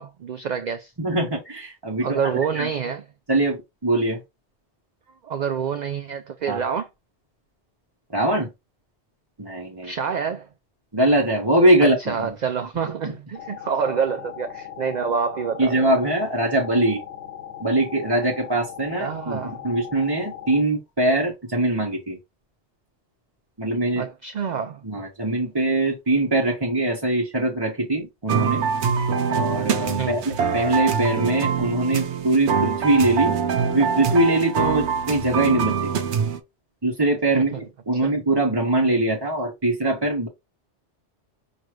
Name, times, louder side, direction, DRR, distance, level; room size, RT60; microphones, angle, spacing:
voice 1, 0.0-0.9 2.0-3.1 5.2-6.9 9.8-10.5 11.8-16.0 19.0-19.6 24.0-24.9 30.0-30.2 37.3-37.6 37.9-38.1, right 6 dB, 55° right, 0.5 m, -27 dB
voice 2, 1.0-2.2 2.5-2.7 3.3-4.2 6.5-6.6 8.1-8.5 9.4-9.9 10.9-12.3 13.0-13.1 15.6-17.0 17.6-22.2 23.6-24.1 24.8-28.7 29.3-33.4 33.7-35.9 36.8-40.3, right 2 dB, 25° right, 0.9 m, -22 dB
sound 1, 13.3-20.6, left 9 dB, 90° left, 1.2 m, -38 dB
sound 2, 28.3-36.4, right 6 dB, 80° right, 1.0 m, -24 dB
6.1 x 2.6 x 3.1 m
omnidirectional pair, 1.1 m